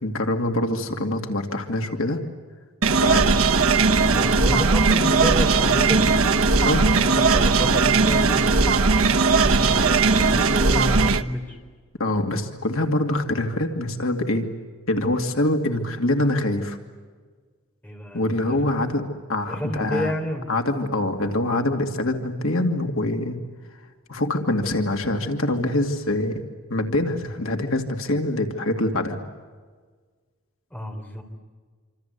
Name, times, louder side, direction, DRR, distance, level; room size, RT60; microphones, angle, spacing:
voice 1, 0.0-2.2 2.9-3.4 6.6-6.9 12.0-14.5 14.9-16.8 18.1-20.1 20.5-23.4 24.1-26.4 26.7-29.2, left 1 dB, 70° left, 4 dB, 2.5 m, -24 dB
sound 1, 2.8-11.2, right 4 dB, 75° right, 1.1 m, -18 dB
voice 2, 3.8-6.1 7.0-11.6 17.8-18.6 19.5-20.6 30.7-31.2, equal, 10° left, 2 dB, 3.9 m, -30 dB
27.0 x 26.5 x 8.3 m, 1.5 s
head